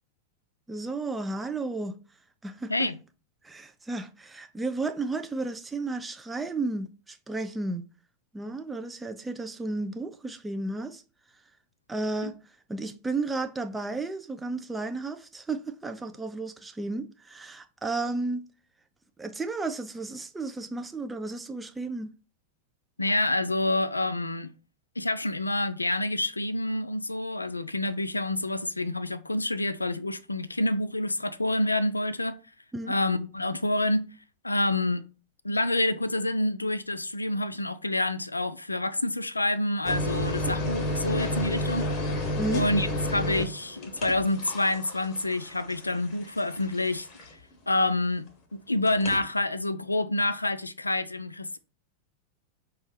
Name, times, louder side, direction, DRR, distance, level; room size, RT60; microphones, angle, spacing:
voice 1, 0.7-2.0 2.4-2.9 3.4-7.8 8.3-11.0 11.9-12.4 12.7-18.4 19.2-22.1 32.7-33.0 42.4-42.6, right 3 dB, 10° right, 0.4 m, -33 dB
voice 2, 23.0-24.5 25.0-32.3 32.9-34.1 34.4-35.1 35.4-41.9 42.5-47.1 47.7-51.6, left 2 dB, 80° left, 0.3 m, -28 dB
sound 1, 39.8-47.5 48.9-49.2, left 1 dB, 35° left, 1.0 m, -32 dB
5.1 x 2.3 x 3.2 m
figure-of-eight pair, 90°, 0 cm